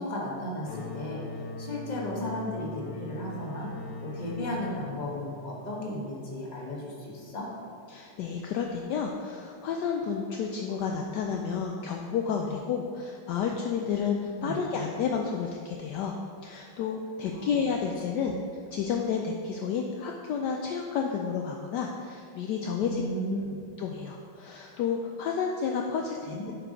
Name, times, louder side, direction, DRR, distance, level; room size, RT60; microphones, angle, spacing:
voice 1, 0.0-3.7 4.0-7.5 14.4-14.6 17.2-17.6 18.2-18.3 22.8-23.4 26.2-26.5, left 1 dB, 25° left, -4 dB, 1.1 m, -35 dB
sound 1, 0.6-6.1, left 3 dB, 50° left, 1.2 m, -41 dB
voice 2, 7.9-16.1 16.4-18.3 18.7-23.1 23.8-26.5, left 6 dB, 80° left, 2 dB, 0.9 m, -31 dB
7.6 x 4.8 x 5.1 m, 2.3 s
omnidirectional pair, 2.3 m